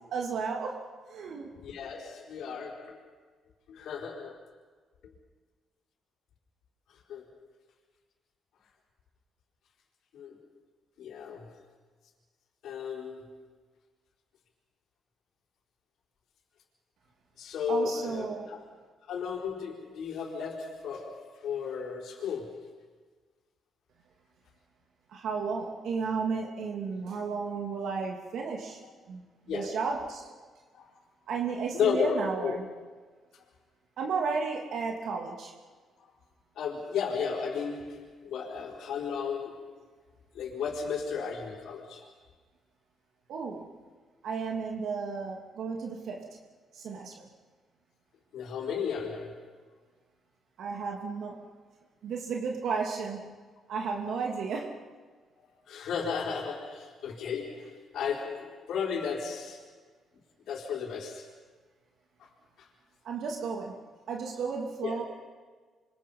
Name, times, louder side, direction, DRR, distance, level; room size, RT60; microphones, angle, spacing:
voice 1, 0.1-0.8 1.1-1.5 17.7-18.6 25.1-28.8 29.1-30.2 31.3-32.7 34.0-35.5 43.3-43.6 44.2-46.3 46.7-47.3 50.6-51.4 52.0-53.3 53.7-54.8 63.0-63.8 64.1-65.0, right 5 dB, 70° right, 0 dB, 2.8 m, -33 dB
voice 2, 1.6-3.0 3.7-4.4 7.1-7.2 10.1-10.3 11.0-11.5 12.6-13.3 17.4-18.6 19.1-22.7 29.5-29.8 30.7-30.9 31.7-32.6 36.6-39.7 40.3-42.1 48.3-49.4 55.7-59.6 60.5-61.3 64.8-65.0, left 6 dB, 75° left, -3 dB, 4.2 m, -34 dB
27.5 x 24.0 x 5.6 m, 1.5 s
cardioid pair, 90°, 0 cm